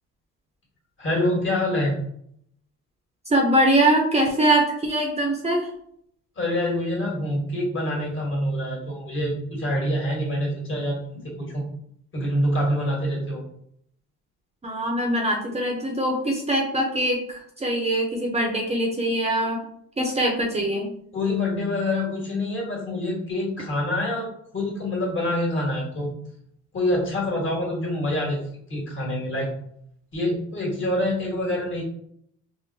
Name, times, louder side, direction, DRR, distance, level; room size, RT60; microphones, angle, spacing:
voice 1, 1.0-2.0 6.4-11.7 12.1-13.4 21.1-24.3 24.5-26.1 26.7-28.4 28.7-29.5 30.1-31.8, left 1 dB, 40° left, -2 dB, 1.4 m, -26 dB
voice 2, 3.3-5.7 14.6-17.2 17.6-19.6 20.0-20.9, right 1 dB, 20° right, 0 dB, 0.6 m, -22 dB
3.7 x 2.1 x 2.6 m, 0.69 s
cardioid pair, 90°, 30 cm